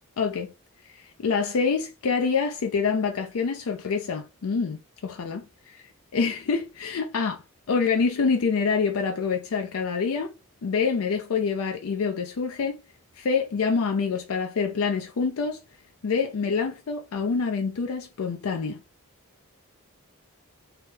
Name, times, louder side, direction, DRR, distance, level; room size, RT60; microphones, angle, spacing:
voice 1, 0.2-0.5 0.9-5.4 6.1-7.4 7.7-10.3 10.6-12.8 13.2-15.6 16.0-18.8, left 5 dB, 70° left, 0.4 m, -26 dB
2.9 x 2.0 x 3.5 m
head